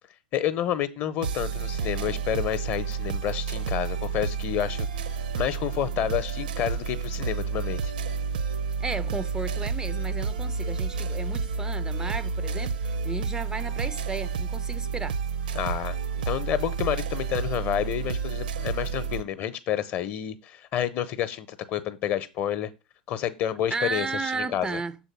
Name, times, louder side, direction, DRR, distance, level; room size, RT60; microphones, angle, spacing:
voice 1, 0.3-4.9 5.3-7.9 15.5-16.0 16.3-22.7 23.1-24.8, left 10 dB, 35° left, 0.8 m, -29 dB
sound 1, 1.2-19.2, right 5 dB, 65° right, 0.7 m, -30 dB
voice 2, 8.8-15.2 23.7-25.0, right 4 dB, 15° right, 0.4 m, -34 dB
6.7 x 4.1 x 6.0 m
figure-of-eight pair, 90°, 5 cm